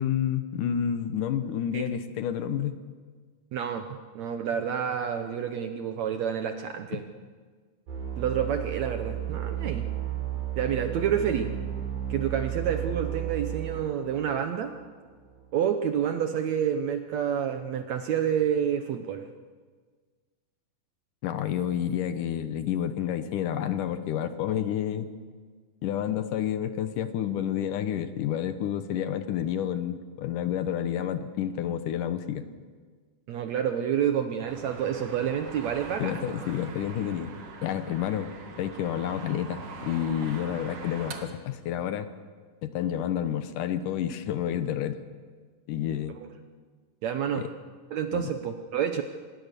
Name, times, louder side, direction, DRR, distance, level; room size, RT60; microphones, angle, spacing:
voice 1, 0.0-2.8 6.9-7.0 21.2-25.1 25.8-32.4 36.0-37.3 37.6-38.3 38.6-42.1 42.6-45.0 45.7-46.2 47.4-47.5 48.1-48.3, left 10 dB, 70° left, 10 dB, 2.4 m, -29 dB
voice 2, 3.5-3.9 4.2-7.0 8.2-9.8 10.6-11.5 12.1-14.7 15.5-19.2 33.3-36.2 46.2-46.3 47.0-47.4 47.9-49.0, right 8 dB, 70° right, 7 dB, 1.8 m, -28 dB
sound 1, 7.9-15.4, right 11 dB, 90° right, 6.7 m, -33 dB
sound 2, 34.5-41.2, right 4 dB, 50° right, 2.5 m, -43 dB
25.5 x 21.0 x 6.8 m, 1.5 s
omnidirectional pair, 4.1 m